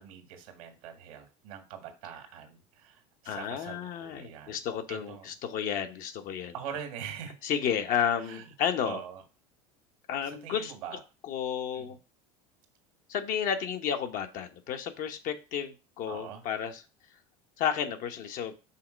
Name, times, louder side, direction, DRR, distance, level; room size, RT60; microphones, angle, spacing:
voice 1, 0.0-4.6 4.9-5.3 6.5-7.3 8.2-8.5 8.9-9.2 10.2-11.0 11.7-11.9 16.1-16.4, right 8 dB, 80° right, 6 dB, 1.8 m, -43 dB
voice 2, 3.2-6.5 7.4-9.0 10.1-10.7 11.2-12.0 13.1-16.8 17.6-18.5, left 8 dB, 55° left, 6 dB, 1.0 m, -32 dB
5.7 x 3.7 x 5.2 m, 0.32 s
hypercardioid pair, 90°, 17 cm